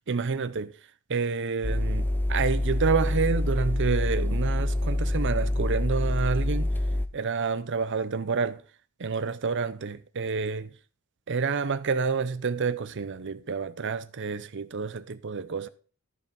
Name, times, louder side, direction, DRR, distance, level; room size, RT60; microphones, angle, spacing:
voice 1, 0.1-0.7 1.1-6.7 7.1-8.6 9.0-10.7 11.3-15.7, right 5 dB, 55° right, 0.7 m, -28 dB
sound 1, 1.6-7.1, left 1 dB, 10° left, 0.6 m, -26 dB
14.0 x 5.0 x 5.2 m
head